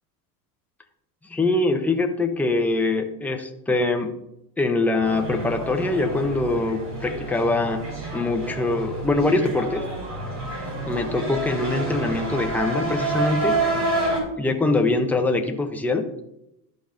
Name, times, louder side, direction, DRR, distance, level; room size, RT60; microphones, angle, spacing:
voice 1, 1.3-4.1 4.6-9.8 10.9-13.6 14.4-16.1, left 2 dB, 5° left, 3 dB, 0.5 m, -23 dB
sound 1, 5.0-14.2, right 2 dB, 35° right, 2.6 m, -28 dB
12.5 x 5.3 x 2.5 m, 0.84 s
supercardioid pair, 130°, 46 cm